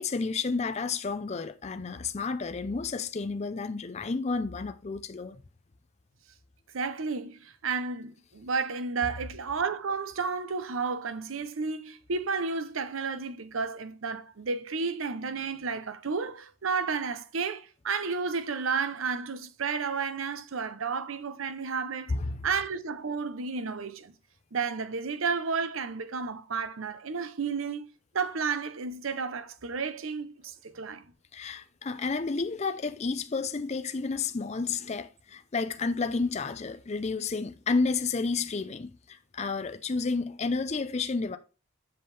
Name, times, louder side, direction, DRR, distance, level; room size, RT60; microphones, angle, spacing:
voice 1, 0.0-5.4 22.1-22.4 31.3-41.4, left 4 dB, 35° left, 0.5 m, -31 dB
voice 2, 6.7-22.2 22.4-24.1 24.5-27.9 28.1-31.0, right 5 dB, 80° right, 0.7 m, -32 dB
7.7 x 7.2 x 3.3 m
head